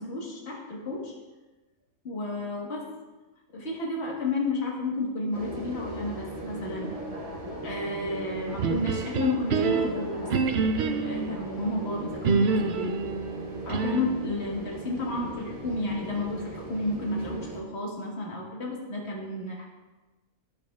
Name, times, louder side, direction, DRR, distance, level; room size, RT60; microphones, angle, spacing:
voice 1, 0.0-1.1 2.0-2.9 3.5-6.9 7.6-10.3 11.0-13.0 13.6-19.7, left 2 dB, 45° left, -2 dB, 1.6 m, -31 dB
sound 1, 5.3-17.6, right 1 dB, 30° right, 0.9 m, -39 dB
sound 2, 8.6-11.4 12.2-14.2, right 5 dB, 75° right, 0.6 m, -27 dB
10.5 x 7.0 x 2.3 m, 1.2 s
omnidirectional pair, 1.6 m